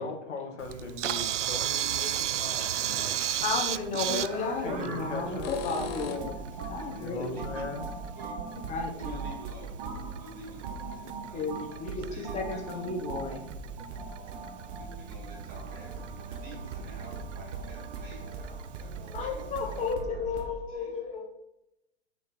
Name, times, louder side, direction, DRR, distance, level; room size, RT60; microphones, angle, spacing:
voice 1, 0.0-3.1 4.3-5.6 7.0-7.8, left 3 dB, 85° left, 2 dB, 1.8 m, -39 dB
Camera, 0.6-19.9, right 11 dB, 80° right, 0.6 m, -37 dB
voice 2, 2.3-4.6 6.8-7.1 7.3-7.7 8.2-8.5 8.9-13.1 14.8-19.9 20.3-20.9, right 2 dB, 25° right, -2 dB, 2.5 m, -50 dB
voice 3, 3.4-6.3 6.7-7.4 8.5-9.4 11.3-13.4 19.1-21.2, left 4 dB, 20° left, 1 dB, 1.4 m, -33 dB
sound 1, 4.3-4.4 5.2-6.5 9.1-9.2 10.0-10.1 10.5-10.6 10.9-11.0, left 6 dB, 55° left, 1.0 m, -39 dB
sound 2, 4.7-20.5, right 3 dB, 40° right, 1.4 m, -40 dB
6.7 x 5.0 x 4.4 m, 0.87 s
hypercardioid pair, 130°, 36 cm